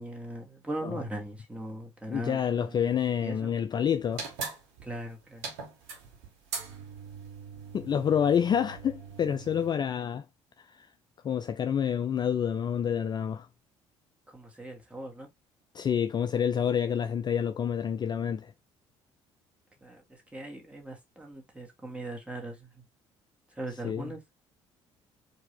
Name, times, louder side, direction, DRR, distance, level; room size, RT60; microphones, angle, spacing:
voice 1, 0.0-3.0 3.2-3.5 4.8-5.4 14.3-15.3 19.8-22.8 23.6-24.2, right 1 dB, 10° right, 1.9 m, -40 dB
voice 2, 2.1-4.2 7.7-10.2 10.6-10.9 11.2-13.5 15.7-18.5 23.8-24.1, left 8 dB, 30° left, 0.4 m, -28 dB
sound 1, 4.1-9.7, right 5 dB, 70° right, 1.4 m, -41 dB
4.5 x 2.7 x 3.3 m
figure-of-eight pair, 50°, 15 cm